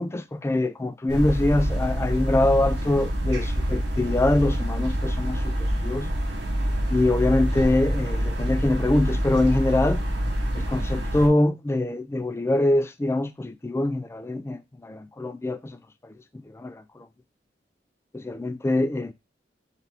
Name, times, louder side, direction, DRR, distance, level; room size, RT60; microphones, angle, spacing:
voice 1, 0.0-6.1 6.9-10.0 10.5-15.8 16.0-16.1 16.5-16.8 18.1-19.1, left 2 dB, 15° left, 0.3 m, -24 dB
sound 1, 1.1-11.3, equal, 75° right, 1.1 m, -26 dB
5.4 x 2.5 x 3.3 m
head